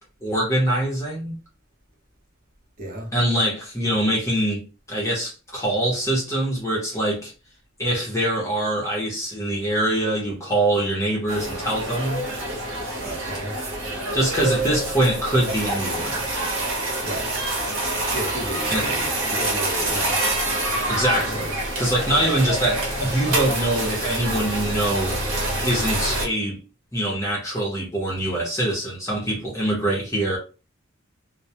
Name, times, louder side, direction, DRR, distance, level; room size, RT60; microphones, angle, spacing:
voice 1, 0.2-1.3 3.1-7.3 7.8-12.2 14.1-16.2 18.7-18.9 20.9-21.5 21.8-25.2 25.6-26.6 26.9-30.4, right 1 dB, 15° left, 0.7 m, -24 dB
voice 2, 2.8-3.1 13.0-13.6 17.0-17.3 18.1-20.2 21.1-21.5, equal, 45° right, 0.7 m, -33 dB
sound 1, 11.3-26.3, right 1 dB, 85° right, 0.9 m, -26 dB
2.2 x 2.1 x 2.7 m
head